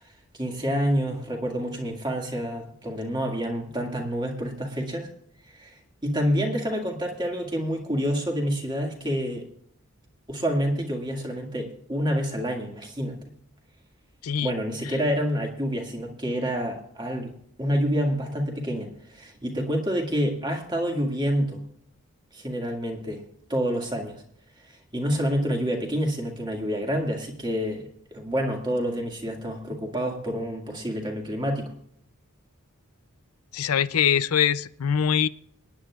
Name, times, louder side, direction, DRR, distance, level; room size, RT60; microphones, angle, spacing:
voice 1, 0.3-5.1 5.5-5.7 6.0-9.5 10.3-13.2 14.4-17.3 17.6-21.6 22.3-23.2 23.5-24.2 24.9-31.7, equal, 20° right, 1 dB, 1.9 m, -28 dB
voice 2, 14.2-14.6 14.8-15.0 33.5-35.3, left 8 dB, 85° left, 14 dB, 0.5 m, -23 dB
27.0 x 10.0 x 2.4 m, 0.67 s
head